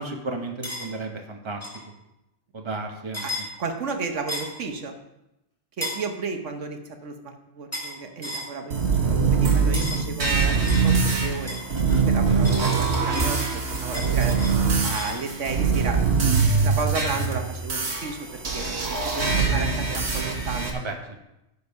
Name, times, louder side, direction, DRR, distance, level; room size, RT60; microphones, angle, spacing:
voice 1, 0.0-1.6 2.5-3.2 11.7-12.1 16.2-16.5 20.7-20.9, right 3 dB, 25° right, 2 dB, 1.2 m, -32 dB
sound 1, 0.6-0.9 1.6-1.8 3.1-3.5 4.3-4.6 5.8-6.1 7.7-8.0 8.2-8.5 9.7-10.1 10.6-12.0 12.4-15.2, left 1 dB, 10° left, 2.9 m, -34 dB
voice 2, 3.2-5.0 5.8-14.4 14.8-16.0 16.6-20.7, right 4 dB, 80° right, 5 dB, 1.4 m, -33 dB
sound 2, 8.7-20.7, right 5 dB, 65° right, 1.9 m, -23 dB
14.5 x 5.5 x 5.5 m, 0.90 s
omnidirectional pair, 1.2 m